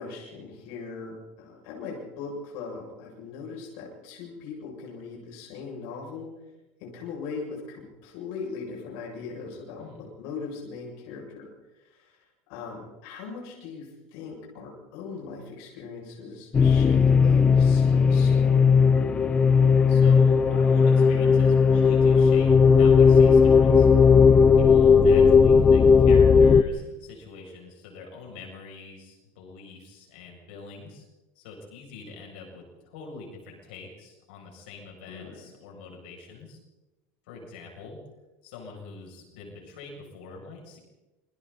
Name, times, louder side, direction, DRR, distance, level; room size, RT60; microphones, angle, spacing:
voice 1, 0.0-6.3 6.8-11.5 11.8-12.2 12.5-18.7 35.1-35.3, left 4 dB, 60° left, -2 dB, 7.5 m, -39 dB
sound 1, 16.5-26.6, left 5 dB, 20° left, 0.7 m, -17 dB
voice 2, 19.9-23.9 24.5-31.0 31.3-36.6 37.3-38.0 38.4-40.8, left 4 dB, 80° left, -1 dB, 7.9 m, -44 dB
28.0 x 23.5 x 4.4 m, 1.1 s
supercardioid pair, 160°, 6 cm